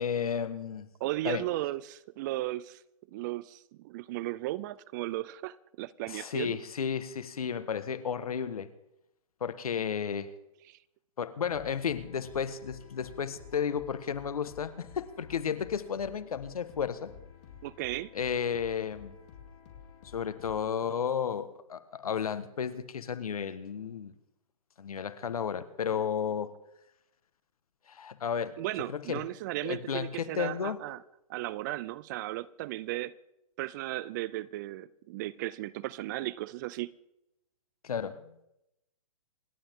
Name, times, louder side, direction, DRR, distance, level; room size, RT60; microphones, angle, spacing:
voice 1, 0.0-0.9 1.2-1.4 6.1-8.7 9.4-10.3 11.2-17.1 18.1-19.2 20.1-24.1 24.8-26.5 27.9-28.5 28.9-29.2 29.6-30.8 37.8-38.3, left 7 dB, 80° left, 1.5 m, -33 dB
voice 2, 1.0-2.8 3.1-6.6 10.7-10.8 17.6-18.1 28.6-31.0 31.3-33.2 33.6-36.9, right 17 dB, 30° right, 0.4 m, -35 dB
sound 1, 11.4-20.7, left 7 dB, 50° left, 4.1 m, -51 dB
27.5 x 12.0 x 3.7 m
hypercardioid pair, 140°, 19 cm